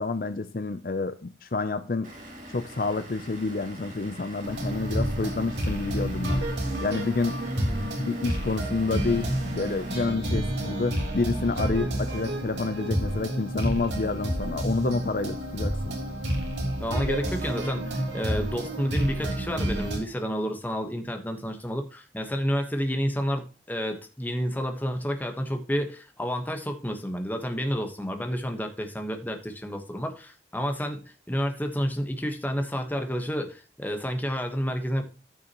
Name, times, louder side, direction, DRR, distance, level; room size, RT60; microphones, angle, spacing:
voice 1, 0.0-2.1 2.5-6.4 6.8-7.4 8.0-16.0, left 3 dB, 50° left, 0.5 m, -29 dB
Vehicle / Engine, 2.0-10.0, right 1 dB, 45° right, 3.0 m, -44 dB
sound 1, 4.4-20.0, right 1 dB, 75° right, 3.5 m, -30 dB
voice 2, 16.8-35.0, equal, 10° left, 1.2 m, -30 dB
14.0 x 6.1 x 3.0 m
head